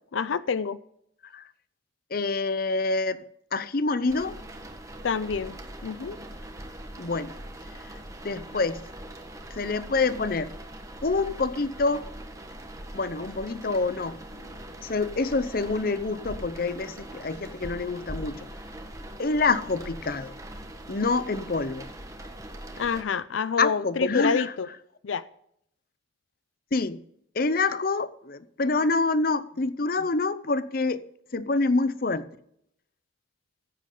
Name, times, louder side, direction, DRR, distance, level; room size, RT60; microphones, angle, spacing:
voice 1, 0.1-0.8 5.0-6.2 22.8-24.7 25.0-25.2, left 5 dB, 85° left, 0.5 m, -28 dB
voice 2, 2.1-4.4 7.0-7.3 8.2-8.8 9.5-10.5 11.0-12.0 12.9-14.5 14.8-18.5 19.2-20.3 20.9-21.9 23.6-24.5 26.7-27.0 27.3-31.0 31.3-32.2, left 3 dB, 50° left, 0.7 m, -26 dB
sound 1, 4.1-23.0, right 1 dB, 15° right, 1.5 m, -42 dB
15.0 x 8.4 x 3.9 m
head